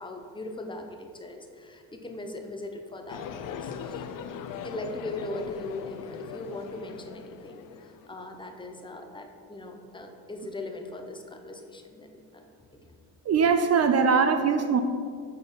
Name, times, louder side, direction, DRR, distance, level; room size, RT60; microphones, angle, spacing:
voice 1, 0.0-4.1 4.6-12.4 12.7-12.9, left 2 dB, 10° left, 3 dB, 0.7 m, -39 dB
sound 1, 3.1-8.1, left 7 dB, 50° left, 0.5 m, -40 dB
voice 2, 13.3-14.8, right 5 dB, 35° right, 7 dB, 0.4 m, -21 dB
5.3 x 4.1 x 5.4 m, 2.2 s
supercardioid pair, 85°, 44 cm